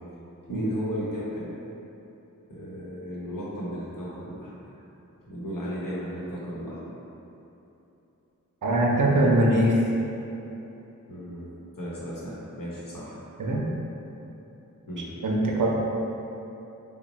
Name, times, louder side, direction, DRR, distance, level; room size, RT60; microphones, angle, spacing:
voice 1, 0.4-1.6 2.5-4.7 5.2-6.8 11.1-11.5 11.7-13.2 14.9-15.1, equal, 80° left, -7 dB, 0.8 m, -35 dB
voice 2, 8.6-9.8 13.4-13.7 15.2-15.7, right 1 dB, 70° right, -2 dB, 0.5 m, -22 dB
3.0 x 2.0 x 4.0 m, 3.0 s
wide cardioid pair, 60°, 33 cm